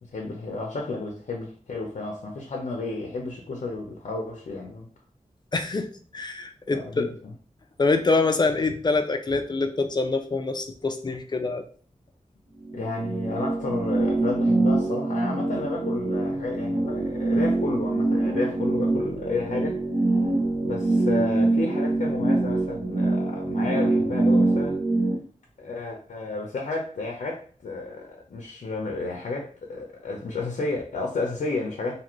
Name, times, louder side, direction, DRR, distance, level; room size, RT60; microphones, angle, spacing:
voice 1, 0.0-4.9 6.7-7.3 12.7-19.8 20.6-24.8 25.6-32.0, left 3 dB, 75° left, 0.6 m, -32 dB
voice 2, 5.5-5.9 6.1-7.1 7.8-11.6, left 3 dB, 35° left, 0.4 m, -25 dB
sound 1, 12.6-25.2, right 2 dB, 75° right, 0.8 m, -24 dB
2.7 x 2.5 x 3.0 m
wide cardioid pair, 90°, 13 cm